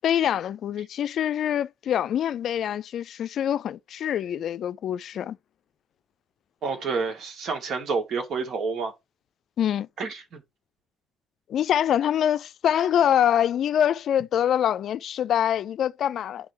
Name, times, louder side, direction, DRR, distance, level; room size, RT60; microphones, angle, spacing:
voice 1, 0.0-5.4 9.6-9.9 11.5-16.5, left 10 dB, 70° left, 0.4 m, -25 dB
voice 2, 6.6-8.9 10.0-10.4, right 4 dB, 65° right, 1.9 m, -29 dB
9.7 x 3.3 x 4.7 m
cardioid pair, 90°, 0 cm